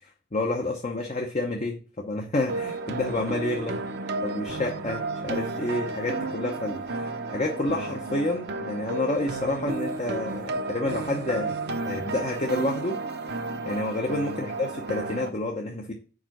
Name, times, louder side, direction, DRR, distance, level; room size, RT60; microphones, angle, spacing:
voice 1, 0.3-3.8 4.2-11.6 11.8-13.0 13.6-15.9, left 2 dB, 35° left, 2 dB, 0.7 m, -29 dB
sound 1, 2.5-15.3, right 3 dB, 55° right, 0.7 m, -32 dB
4.8 x 4.5 x 6.0 m, 0.37 s
head